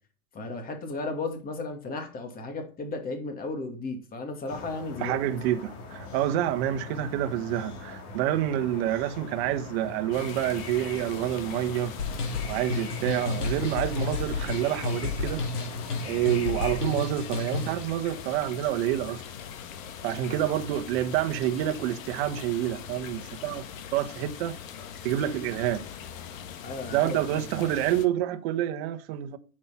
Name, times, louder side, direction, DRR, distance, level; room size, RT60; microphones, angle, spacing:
voice 1, 0.3-5.2 20.3-20.4 26.6-27.5, left 3 dB, 20° left, 2.6 m, -35 dB
sound 1, 4.5-16.8, left 4 dB, 40° left, 3.0 m, -42 dB
voice 2, 5.0-11.9 12.5-15.5 16.1-19.2 20.0-23.6 23.9-24.5 25.0-25.8 26.9-29.4, right 12 dB, 45° right, 1.4 m, -28 dB
sound 2, 10.1-28.1, left 8 dB, 60° left, 1.8 m, -42 dB
sound 3, 12.0-17.8, left 4 dB, 80° left, 4.5 m, -32 dB
9.2 x 7.6 x 5.9 m
hypercardioid pair, 135°, 45 cm